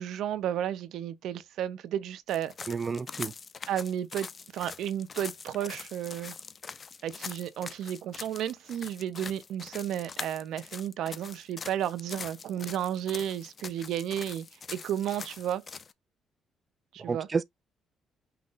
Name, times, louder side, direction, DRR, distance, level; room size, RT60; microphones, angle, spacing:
voice 1, 0.0-2.5 3.7-6.3 7.0-15.6 16.9-17.3, right 10 dB, 80° right, 0.7 m, -33 dB
sound 1, 2.3-15.9, left 5 dB, 40° left, 0.5 m, -43 dB
voice 2, 2.7-3.3 17.0-17.4, right 5 dB, 35° right, 0.4 m, -30 dB
5.8 x 2.4 x 3.8 m
cardioid pair, 90°, 0 cm